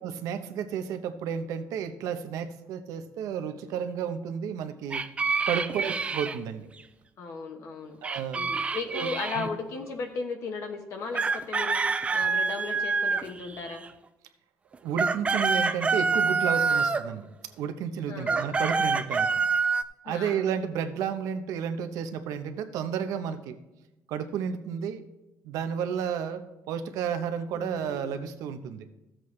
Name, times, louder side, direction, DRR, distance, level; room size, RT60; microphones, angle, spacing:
voice 1, 0.0-5.0 5.5-6.7 8.0-8.4 8.9-9.1 9.4-9.5 14.8-17.3 17.6-19.3 20.0-23.6 24.1-25.0 25.4-28.9, right 8 dB, 90° right, 8 dB, 0.8 m, -32 dB
sound 1, 4.9-6.4 8.0-9.5 11.1-13.9 14.7-17.1 18.2-19.8, right 4 dB, 20° right, 0.4 m, -27 dB
voice 2, 5.6-5.9 7.2-8.0 8.3-11.8 12.1-13.8 18.1-18.5 20.0-20.4 27.5-28.1, left 4 dB, 60° left, 4 dB, 1.0 m, -36 dB
14.0 x 7.6 x 3.2 m, 0.99 s
cardioid pair, 145°, 6 cm